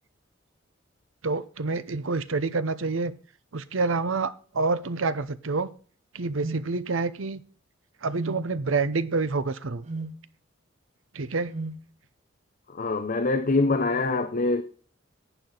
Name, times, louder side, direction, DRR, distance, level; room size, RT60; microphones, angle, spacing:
voice 1, 1.2-3.1 3.5-5.7 6.1-7.4 8.0-9.8 11.1-11.5, right 3 dB, 85° right, 0.8 m, -27 dB
sound 1, 6.4-6.7 8.1-8.4 9.9-10.2 11.5-11.8, right 2 dB, 35° right, 1.2 m, -34 dB
voice 2, 12.7-14.6, left 3 dB, 45° left, 0.7 m, -24 dB
11.0 x 9.1 x 3.9 m
head